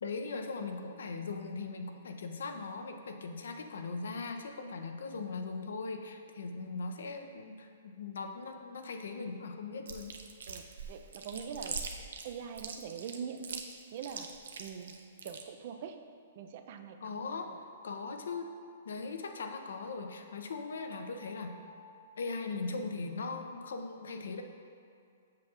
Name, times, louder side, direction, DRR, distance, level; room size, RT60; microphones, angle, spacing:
voice 1, 0.0-10.2 17.0-17.5 17.8-18.5 18.8-21.5 22.2-24.4, left 4 dB, 85° left, 5 dB, 0.6 m, -39 dB
Chewing mastication, 9.9-15.4, right 5 dB, 80° right, 0.6 m, -42 dB
voice 2, 10.5-11.8 12.2-15.0 15.2-16.0 16.4-17.2, right 7 dB, 35° right, 7 dB, 0.4 m, -43 dB
sound 1, 17.8-22.5, left 2 dB, 10° right, 0.8 m, -57 dB
7.5 x 7.4 x 2.4 m, 2.4 s
hypercardioid pair, 175°, 0 cm